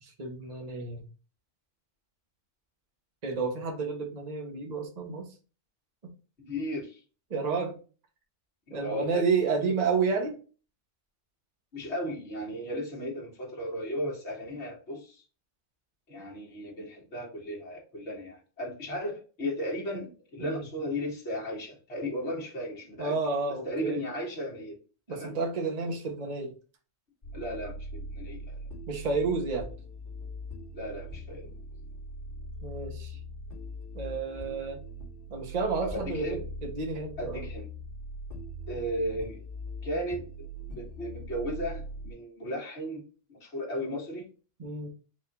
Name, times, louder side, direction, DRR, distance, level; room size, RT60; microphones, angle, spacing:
voice 1, 0.0-1.0 3.2-5.3 7.3-7.8 8.7-10.4 20.4-20.6 23.0-24.0 25.1-26.5 28.9-29.7 32.6-33.2 33.9-34.8 35.3-37.4 44.6-44.9, right 4 dB, 35° right, 1 dB, 0.9 m, -31 dB
voice 2, 6.4-7.0 8.7-9.2 11.7-15.2 16.1-23.2 23.6-24.8 25.1-25.3 27.3-28.6 30.7-31.5 35.8-36.4 37.2-37.7 38.7-39.4 39.8-40.5 40.7-44.2, equal, 60° left, -3 dB, 1.9 m, -35 dB
sound 1, 27.2-42.1, equal, 45° left, 1.9 m, -41 dB
4.7 x 2.5 x 4.0 m, 0.35 s
omnidirectional pair, 1.3 m